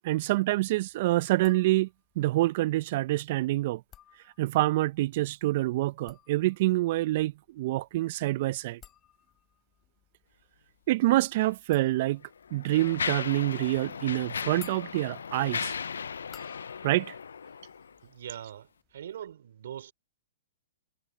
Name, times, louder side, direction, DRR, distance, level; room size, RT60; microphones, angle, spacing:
voice 1, 0.0-1.9 2.2-3.8 4.4-8.8 10.9-12.2 12.5-15.7 16.8-17.1, right 17 dB, 50° right, 0.5 m, -26 dB
sound 1, 1.4-2.2 3.7-4.8 5.8-18.5 18.8-19.3, left 11 dB, 25° left, 2.7 m, -57 dB
Mechanisms, 11.3-11.5 12.2-18.0, left 6 dB, 85° left, 0.3 m, -36 dB
voice 2, 18.0-19.9, right 10 dB, 70° right, 3.6 m, -42 dB
hypercardioid pair, 130°, 0 cm